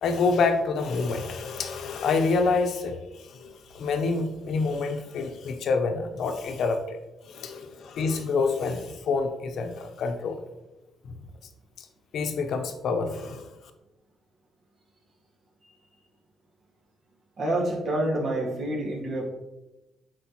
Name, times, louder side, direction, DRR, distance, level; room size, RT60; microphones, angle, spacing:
voice 1, 0.0-7.0 7.3-10.4 11.0-11.1 11.8-11.9 12.1-13.5, left 4 dB, 70° left, 6 dB, 0.9 m, -27 dB
voice 2, 17.4-19.3, right 1 dB, 55° right, -1 dB, 2.1 m, -27 dB
8.4 x 4.6 x 3.1 m, 1.0 s
cardioid pair, 90°, 0 cm